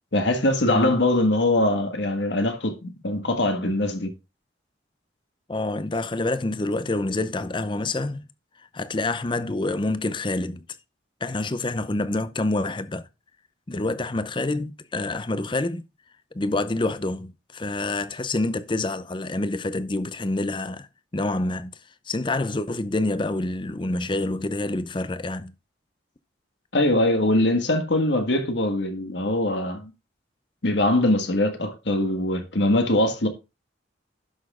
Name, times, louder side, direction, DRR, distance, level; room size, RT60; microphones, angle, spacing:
voice 1, 0.1-4.1 26.7-29.9 30.6-33.3, left 1 dB, 70° left, 1.6 m, -22 dB
voice 2, 5.5-8.2 8.7-10.6 11.2-13.1 13.7-15.8 16.3-20.9 21.1-21.7 22.1-25.5, left 2 dB, 25° left, 0.6 m, -27 dB
11.5 x 6.2 x 3.6 m
head